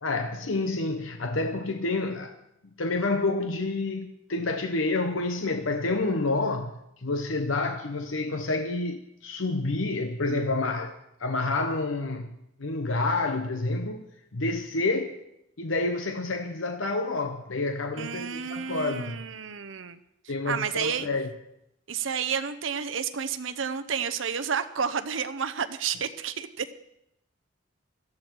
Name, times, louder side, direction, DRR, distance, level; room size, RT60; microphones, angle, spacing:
voice 1, 0.0-2.4 2.8-10.9 11.2-12.3 12.6-14.0 14.3-15.2 15.6-19.3 20.3-21.3, left 3 dB, 85° left, 6 dB, 0.9 m, -28 dB
voice 2, 18.0-20.0 20.5-21.1 21.9-26.7, right 7 dB, 75° right, 9 dB, 0.8 m, -30 dB
17.0 x 13.0 x 4.6 m, 0.79 s
head